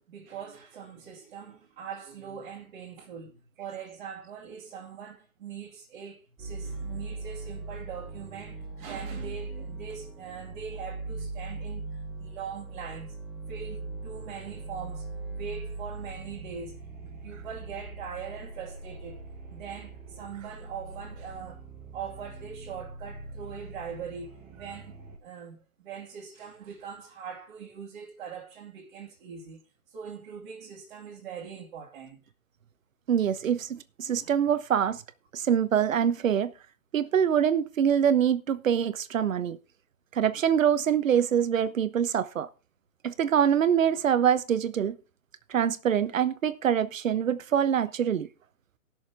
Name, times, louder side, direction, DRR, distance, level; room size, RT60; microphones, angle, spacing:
voice 1, 0.0-11.8 12.2-13.2 13.5-19.2 19.5-21.6 21.9-29.6 29.9-32.2, right 7 dB, 40° right, 2.5 m, -42 dB
sound 1, 6.4-25.2, right 3 dB, 5° right, 0.6 m, -40 dB
voice 2, 33.1-35.0 35.3-36.5 36.9-39.6 40.1-42.5 43.0-45.0 45.5-48.3, right 8 dB, 65° right, 1.0 m, -25 dB
18.5 x 6.6 x 3.5 m
hypercardioid pair, 155°, 42 cm